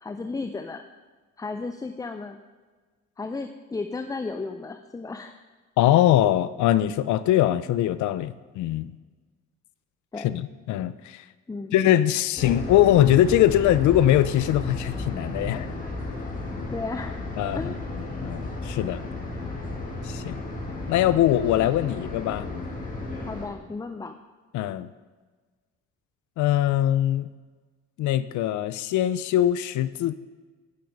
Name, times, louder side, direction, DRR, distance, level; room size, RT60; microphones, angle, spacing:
voice 1, 0.0-0.8 1.4-2.4 3.2-5.4 10.1-10.4 11.5-11.7 16.7-17.2 17.5-17.8 23.3-24.1, left 3 dB, 10° left, 7 dB, 0.4 m, -34 dB
voice 2, 5.8-8.9 10.2-11.2 11.7-15.7 17.4-17.7 18.0-19.0 20.0-20.4 20.9-22.5 24.5-24.9 26.4-27.3 28.0-30.1, left 12 dB, 75° left, 14 dB, 0.5 m, -22 dB
sound 1, 12.4-23.5, left 2 dB, 25° left, 2.3 m, -33 dB
9.5 x 5.9 x 5.1 m, 1.3 s
cardioid pair, 90°, 30 cm